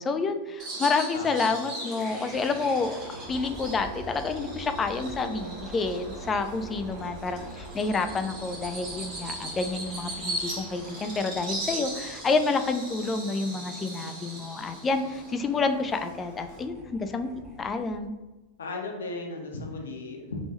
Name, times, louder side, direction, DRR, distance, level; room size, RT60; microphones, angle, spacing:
voice 1, 0.0-17.3 17.6-18.1, left 4 dB, 20° left, 8 dB, 0.3 m, -29 dB
Bird vocalization bird call bird song, 0.6-16.6, right 1 dB, 35° right, 1.2 m, -39 dB
voice 2, 1.1-1.7 18.6-20.4, left 3 dB, 65° left, 1 dB, 0.8 m, -36 dB
sound 1, 1.8-18.1, right 2 dB, 15° right, 0.8 m, -47 dB
3.5 x 3.0 x 2.9 m, 1.1 s
figure-of-eight pair, 90°, 0 cm